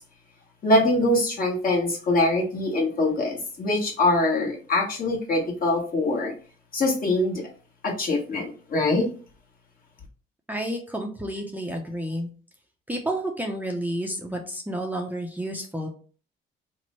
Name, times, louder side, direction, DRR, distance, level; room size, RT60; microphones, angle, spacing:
voice 1, 0.6-6.3 6.7-7.4 7.8-9.1, left 2 dB, 45° left, -1 dB, 1.2 m, -23 dB
voice 2, 10.5-12.3 12.9-15.9, right 1 dB, 10° right, 1 dB, 0.5 m, -30 dB
2.9 x 2.1 x 4.1 m, 0.40 s
cardioid pair, 90°, 20 cm